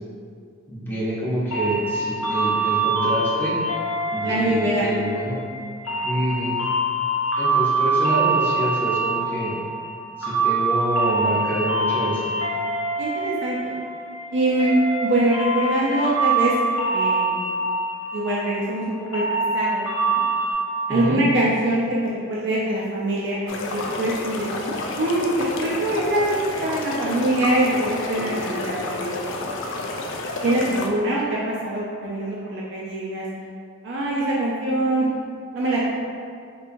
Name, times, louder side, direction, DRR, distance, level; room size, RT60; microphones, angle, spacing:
voice 1, 0.7-3.5 4.1-5.4 6.0-6.6 7.4-9.5 10.2-12.3 20.9-21.2, equal, 10° left, -9 dB, 0.6 m, -27 dB
sound 1, 1.5-20.5, right 3 dB, 80° left, 0.7 m, -24 dB
voice 2, 4.2-4.9 6.0-6.2 13.0-13.7 14.3-16.5 16.9-17.4 18.1-19.2 19.5-20.2 20.9-24.5 25.0-26.3 26.6-29.1 29.4-29.5 30.4-33.2 33.8-35.1 35.5-35.8, right 1 dB, 55° right, -5 dB, 0.4 m, -23 dB
sound 2, 23.5-30.9, left 2 dB, 60° left, 0.3 m, -30 dB
3.7 x 2.7 x 2.5 m, 2.2 s
head